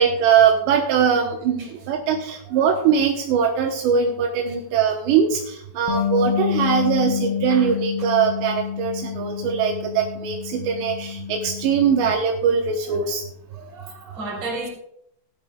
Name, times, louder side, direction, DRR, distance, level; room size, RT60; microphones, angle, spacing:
voice 1, 0.0-13.2, right 7 dB, 80° right, 3.1 m, -21 dB
Bass guitar, 5.9-12.1, left 8 dB, 75° left, 2.6 m, -28 dB
voice 2, 13.5-14.7, right 2 dB, 40° right, 3.9 m, -33 dB
17.5 x 11.0 x 2.3 m
omnidirectional pair, 5.0 m